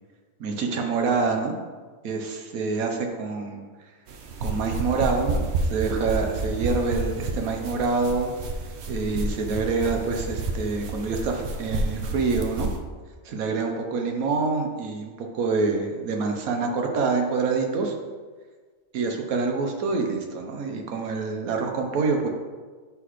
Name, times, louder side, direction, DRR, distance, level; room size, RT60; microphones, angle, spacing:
voice 1, 0.4-1.5 2.0-3.9 4.4-5.4 5.7-8.3 8.9-12.7 13.2-17.9 18.9-22.3, right 4 dB, 85° right, 3 dB, 1.3 m, -26 dB
sound 1, 4.1-12.8, right 2 dB, 60° right, 0.8 m, -30 dB
8.9 x 4.0 x 3.1 m, 1.5 s
omnidirectional pair, 1.4 m